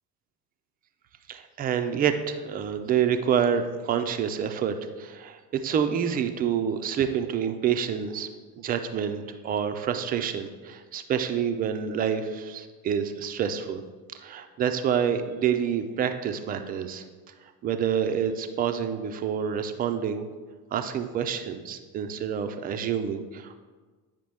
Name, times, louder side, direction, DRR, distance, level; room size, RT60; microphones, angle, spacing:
voice 1, 1.3-8.3 8.6-13.8 14.2-17.0 17.6-20.2 20.7-23.5, right 8 dB, 20° right, 7 dB, 0.3 m, -27 dB
8.9 x 5.2 x 3.3 m, 1.4 s
figure-of-eight pair, 60°, 48 cm